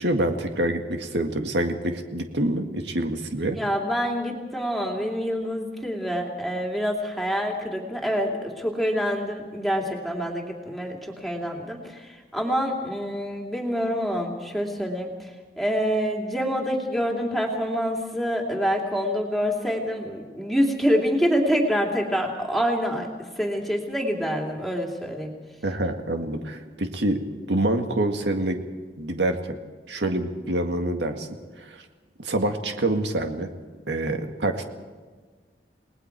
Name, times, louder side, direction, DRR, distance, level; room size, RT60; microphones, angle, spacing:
voice 1, 0.0-3.6 25.6-27.2 27.5-28.6 29.0-29.6 29.9-31.3 31.6-31.8 32.2-33.5 33.9-34.6, right 1 dB, 85° right, 5 dB, 1.9 m, -26 dB
voice 2, 3.5-15.3 15.6-25.3, equal, ahead, -1 dB, 2.7 m, -26 dB
29.5 x 19.5 x 4.7 m, 1.4 s
head